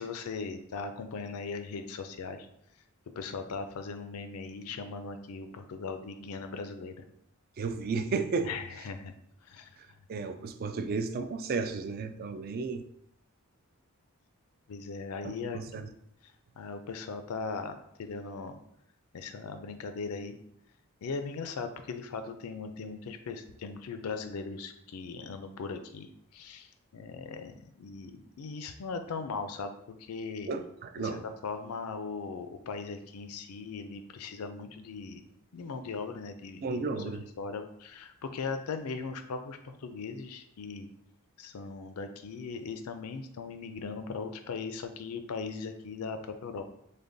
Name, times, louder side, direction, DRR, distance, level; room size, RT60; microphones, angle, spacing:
voice 1, 0.0-2.5 3.2-7.0 8.4-9.1 9.4-10.0 14.7-15.9 16.2-18.6 19.1-20.4 21.0-30.5 31.1-35.3 35.5-40.9 41.4-46.6, left 4 dB, 80° left, 8 dB, 0.4 m, -39 dB
voice 2, 7.6-8.5 10.1-12.8 15.2-15.9 30.5-31.2 36.6-37.2, right 4 dB, 40° right, 9 dB, 0.3 m, -33 dB
6.5 x 2.2 x 2.6 m, 0.73 s
head